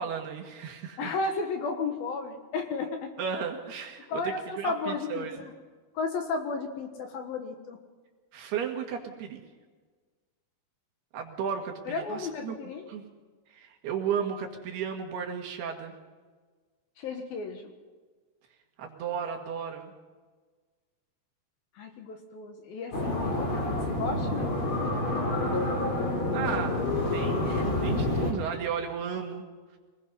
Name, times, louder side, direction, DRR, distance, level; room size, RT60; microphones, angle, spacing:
voice 1, 0.0-1.1 3.2-5.5 8.3-9.4 11.1-12.6 12.9-13.0 13.5-15.9 18.8-19.9 26.3-29.4, right 7 dB, 65° right, 3 dB, 3.6 m, -34 dB
voice 2, 1.0-3.1 4.1-5.5 5.9-7.8 11.9-12.9 17.0-17.7 21.8-24.6, left 4 dB, 65° left, 5 dB, 2.8 m, -34 dB
sound 1, 22.9-28.3, left 1 dB, 30° left, 3.9 m, -28 dB
25.0 x 19.5 x 5.5 m, 1.4 s
omnidirectional pair, 5.2 m